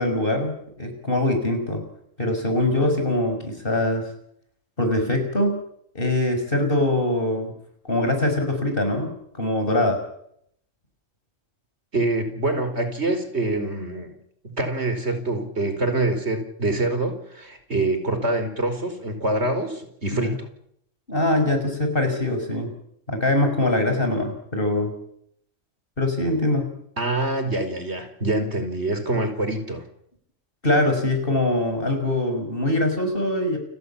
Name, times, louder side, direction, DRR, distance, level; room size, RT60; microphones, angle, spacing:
voice 1, 0.0-1.8 2.2-4.1 4.8-5.6 5.9-7.5 7.8-10.0 20.1-20.4 21.1-22.7 23.1-24.9 26.0-26.7 30.6-33.6, left 1 dB, 45° left, 5 dB, 6.0 m, -23 dB
voice 2, 11.9-14.1 14.4-20.5 27.0-29.8, right 2 dB, 55° right, 8 dB, 5.1 m, -25 dB
29.5 x 16.5 x 8.7 m, 0.71 s
omnidirectional pair, 1.3 m